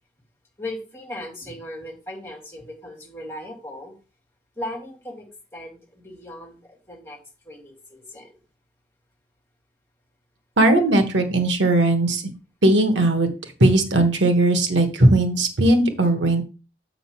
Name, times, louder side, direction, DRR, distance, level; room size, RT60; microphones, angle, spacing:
voice 1, 0.6-3.9 4.6-7.2 7.5-8.4, left 1 dB, 15° left, -1 dB, 2.4 m, -37 dB
voice 2, 10.6-12.2 12.6-13.3 13.6-16.4, right 2 dB, 85° right, 7 dB, 1.3 m, -18 dB
7.7 x 3.8 x 6.0 m, 0.33 s
head